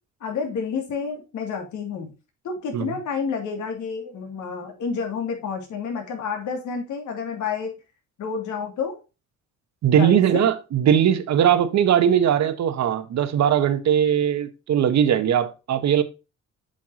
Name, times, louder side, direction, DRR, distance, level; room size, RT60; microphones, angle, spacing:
voice 1, 0.2-2.1 2.4-7.7 8.2-9.0 9.9-10.5, left 5 dB, 75° left, 2.5 m, -29 dB
voice 2, 9.8-16.0, right 9 dB, 65° right, 1.1 m, -20 dB
7.7 x 5.8 x 2.9 m
cardioid pair, 90°, 30 cm